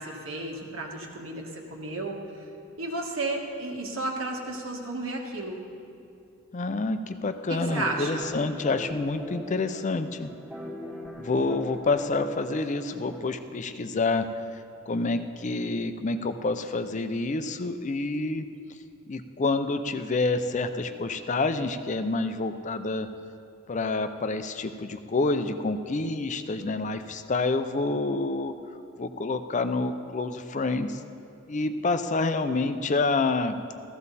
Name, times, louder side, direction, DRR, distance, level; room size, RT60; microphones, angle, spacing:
voice 1, 0.0-2.2 2.8-5.6 7.5-8.2, right 2 dB, 70° right, 0 dB, 1.7 m, -33 dB
voice 2, 6.5-10.3 11.2-14.3 14.5-18.4 19.1-23.1 23.7-28.5 29.0-31.0 31.5-33.6, left 3 dB, 35° left, 9 dB, 0.5 m, -28 dB
sound 1, 7.7-13.3, equal, 10° right, 1.7 m, -40 dB
14.5 x 14.5 x 4.1 m, 2.6 s
head